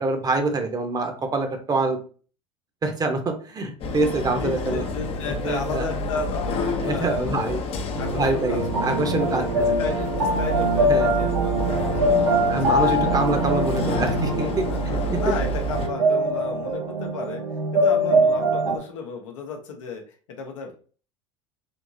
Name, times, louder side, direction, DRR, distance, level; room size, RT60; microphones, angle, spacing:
voice 1, 0.0-2.0 2.8-4.8 5.4-5.9 6.8-7.6 8.1-9.7 10.9-11.1 12.5-14.7, right 3 dB, 25° right, 5 dB, 0.8 m, -25 dB
sound 1, 3.8-15.9, left 1 dB, 35° left, 0.6 m, -29 dB
voice 2, 4.4-7.5 8.0-12.7 13.2-13.3 14.7-14.8 15.2-17.4 17.7-20.8, left 4 dB, 70° left, 3 dB, 0.8 m, -34 dB
sound 2, 8.0-18.8, right 1 dB, 80° right, 0.6 m, -23 dB
3.6 x 2.8 x 2.6 m, 0.40 s
hypercardioid pair, 75°, 16 cm